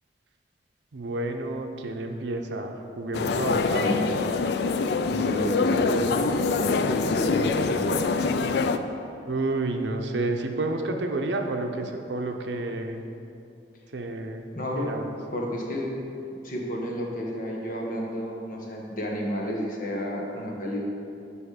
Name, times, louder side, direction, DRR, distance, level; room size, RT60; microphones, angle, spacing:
voice 1, 0.9-3.9 9.3-13.0 13.9-14.4 14.8-15.1, right 2 dB, 85° right, 4 dB, 0.7 m, -30 dB
sound 1, 3.1-8.8, left 4 dB, 65° left, 0.3 m, -25 dB
voice 2, 3.7-4.1 5.0-6.2 6.5-8.1 14.5-14.9 15.3-16.0 16.4-20.9, equal, 50° left, -1 dB, 1.2 m, -30 dB
5.6 x 5.0 x 6.6 m, 2.6 s
head